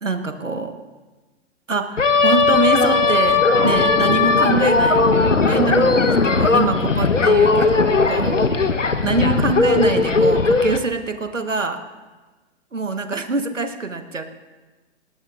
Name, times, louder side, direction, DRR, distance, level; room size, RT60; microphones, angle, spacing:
voice 1, 0.0-0.8 1.7-5.1 5.4-6.1 6.4-8.4 9.0-11.8 12.7-14.2, right 3 dB, 90° right, 7 dB, 1.4 m, -24 dB
sound 1, 2.0-10.8, left 4 dB, 90° left, 1.1 m, -17 dB
19.0 x 18.5 x 2.5 m, 1.2 s
figure-of-eight pair, 120°, 36 cm